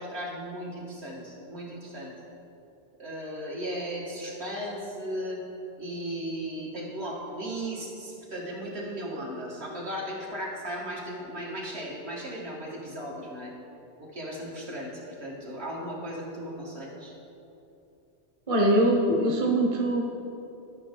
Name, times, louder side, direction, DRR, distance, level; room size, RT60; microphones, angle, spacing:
voice 1, 0.0-2.1 3.0-5.4 5.8-13.5 14.0-17.1, equal, 65° right, -4 dB, 1.9 m, -36 dB
voice 2, 18.5-20.0, right 1 dB, 30° right, 0 dB, 0.9 m, -22 dB
12.5 x 6.2 x 3.7 m, 2.8 s
omnidirectional pair, 1.2 m